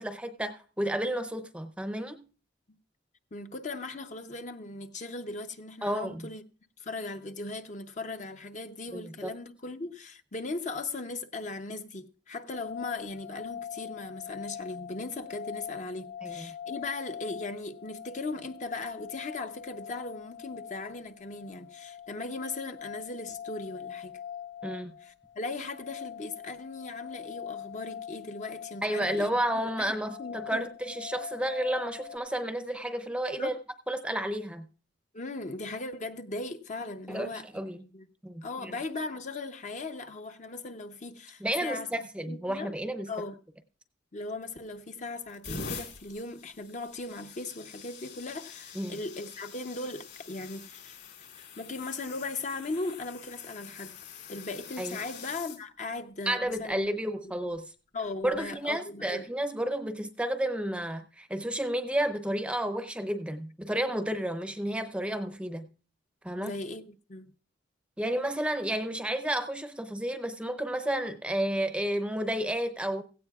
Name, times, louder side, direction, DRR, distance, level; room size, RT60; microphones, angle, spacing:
voice 1, 0.0-2.2 5.8-6.3 8.9-9.3 16.2-16.5 24.6-24.9 28.8-33.5 33.9-34.6 37.1-37.8 38.2-38.7 41.4-43.1 48.8-48.9 54.8-55.0 56.3-57.6 58.2-65.7 66.2-66.5 68.0-73.0, right 1 dB, 5° right, 0.7 m, -31 dB
voice 2, 3.3-6.4 6.8-24.2 25.0-29.3 29.8-30.7 33.4-33.6 35.1-38.1 38.4-41.9 42.3-42.8 43.1-43.4 44.1-51.0 51.4-53.9 54.3-57.0 57.9-59.3 66.4-67.3, left 3 dB, 40° left, 0.7 m, -38 dB
sound 1, 12.5-32.2, left 9 dB, 75° left, 0.7 m, -43 dB
sound 2, 44.4-44.8 45.3-55.6 56.5-56.7 58.2-58.4, left 5 dB, 55° left, 3.3 m, -45 dB
16.5 x 16.0 x 2.4 m
head